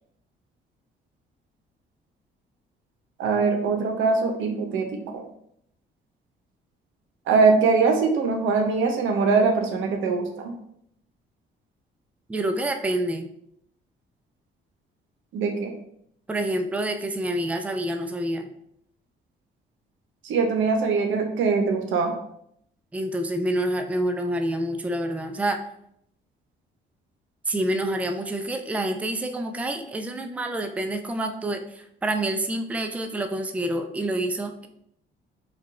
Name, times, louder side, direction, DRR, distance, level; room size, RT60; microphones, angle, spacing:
voice 1, 3.2-5.0 7.3-10.5 15.3-15.7 20.2-22.1, right 4 dB, 80° right, 3 dB, 0.8 m, -22 dB
voice 2, 12.3-13.3 16.3-18.5 22.9-25.6 27.5-34.7, right 1 dB, 5° right, 6 dB, 0.4 m, -27 dB
4.9 x 2.3 x 3.1 m, 0.71 s
cardioid pair, 90°, 20 cm